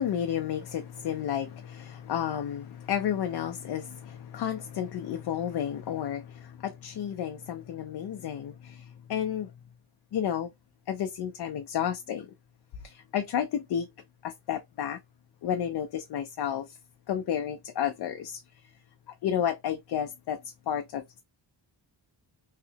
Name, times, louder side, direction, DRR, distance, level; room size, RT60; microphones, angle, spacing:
voice 1, 0.0-9.5 10.1-10.5 10.9-12.3 12.8-13.9 14.2-15.0 15.4-16.8 17.1-18.4 19.2-20.4 20.7-21.0, left 9 dB, 60° left, 0.5 m, -31 dB
3.2 x 2.8 x 2.7 m
wide cardioid pair, 165°, 44 cm